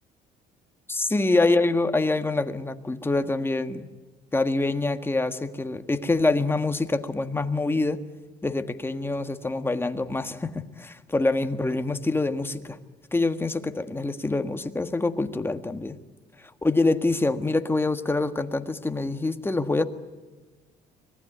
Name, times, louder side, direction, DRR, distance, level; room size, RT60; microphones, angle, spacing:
voice 1, 0.9-3.9 4.3-8.0 8.4-12.8 13.1-16.0 16.6-19.8, left 2 dB, 15° left, 8 dB, 1.6 m, -25 dB
25.0 x 19.5 x 9.2 m, 1.3 s
cardioid pair, 110°, 17 cm